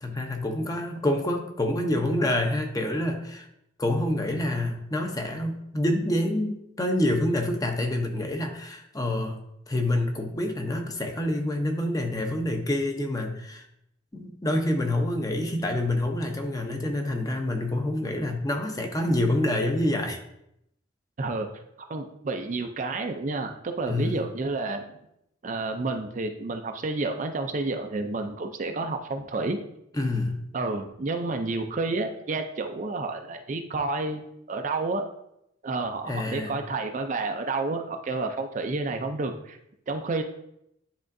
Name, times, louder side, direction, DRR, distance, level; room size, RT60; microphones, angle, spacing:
voice 1, 0.0-3.5 3.8-9.4 9.7-13.7 14.1-20.2 23.9-24.2 29.9-30.4 36.1-36.6, left 1 dB, 20° left, 4 dB, 0.6 m, -27 dB
voice 2, 21.9-24.8 25.4-29.6 30.5-35.1 35.6-39.6 39.9-40.2, right 3 dB, 40° right, 5 dB, 0.4 m, -30 dB
9.9 x 3.7 x 2.6 m, 0.80 s
head